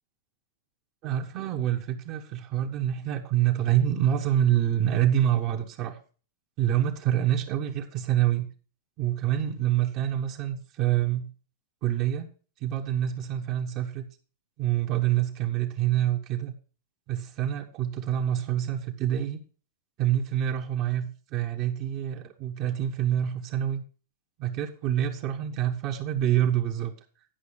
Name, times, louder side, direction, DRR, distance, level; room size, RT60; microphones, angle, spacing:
voice 1, 1.0-6.0 6.6-8.5 9.0-11.3 11.8-12.3 12.6-14.1 14.6-16.5 17.1-19.4 20.0-23.8 24.4-26.9, right 11 dB, 40° right, 1 dB, 1.2 m, -26 dB
10.5 x 5.3 x 6.6 m, 0.39 s
hypercardioid pair, 120°, 0 cm